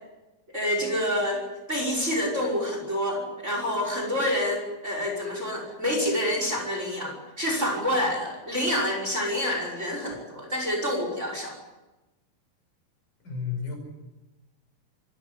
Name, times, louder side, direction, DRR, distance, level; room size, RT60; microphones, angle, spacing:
voice 1, 0.5-11.6, left 1 dB, 15° right, 1 dB, 5.7 m, -27 dB
voice 2, 13.2-13.8, left 6 dB, 55° left, 4 dB, 7.0 m, -31 dB
25.5 x 15.5 x 9.7 m, 1.1 s
omnidirectional pair, 4.5 m